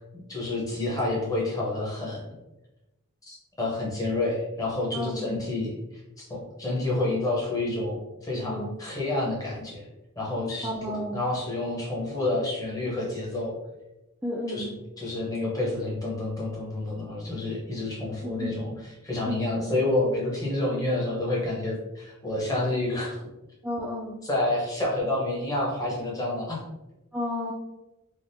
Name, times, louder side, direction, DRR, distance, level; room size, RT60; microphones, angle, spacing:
voice 1, 0.0-2.2 3.3-9.9 10.2-13.6 14.5-14.7 15.0-23.2 24.2-26.6, left 2 dB, 15° left, -4 dB, 0.8 m, -29 dB
voice 2, 4.9-5.5 8.5-8.7 10.6-11.2 14.2-14.7 18.2-18.7 19.2-19.7 23.6-24.2 27.1-27.5, left 1 dB, 5° right, -3 dB, 0.3 m, -32 dB
3.4 x 2.4 x 2.6 m, 0.99 s
head